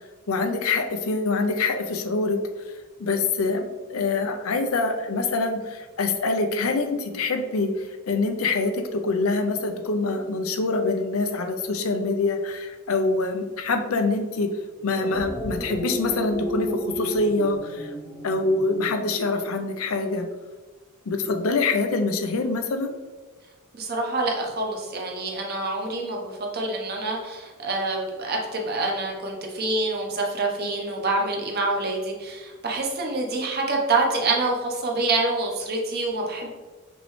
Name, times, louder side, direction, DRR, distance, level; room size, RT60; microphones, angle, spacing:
voice 1, 0.3-2.4 2.7-14.5 14.8-17.9 18.2-20.3 21.1-22.9, left 3 dB, 85° left, 6 dB, 0.6 m, -25 dB
sound 1, 14.8-19.4, equal, 15° left, 0.7 m, -33 dB
voice 2, 23.7-36.5, right 2 dB, 50° right, 0 dB, 0.9 m, -26 dB
5.3 x 3.2 x 3.1 m, 1.3 s
head